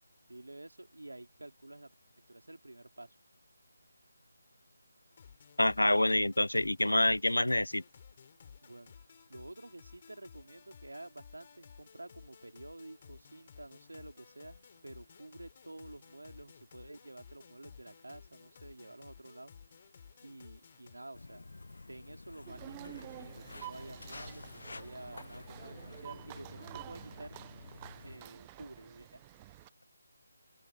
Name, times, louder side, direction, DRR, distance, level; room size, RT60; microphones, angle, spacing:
voice 1, 0.3-1.9 2.3-3.1 8.6-8.9 9.3-19.5 20.2-21.5 21.9-27.4 28.0-29.2, right 2 dB, 80° right, 3.0 m, -50 dB
sound 1, 5.1-21.0, left 7 dB, 35° left, 6.1 m, -56 dB
voice 2, 5.6-7.8, left 1 dB, 85° left, 0.4 m, -27 dB
Walk footsteps, 21.1-28.2, left 3 dB, 65° left, 1.2 m, -50 dB
Content warning, 22.5-29.7, right 19 dB, 20° right, 0.6 m, -50 dB
open air
figure-of-eight pair, 160°, 0 cm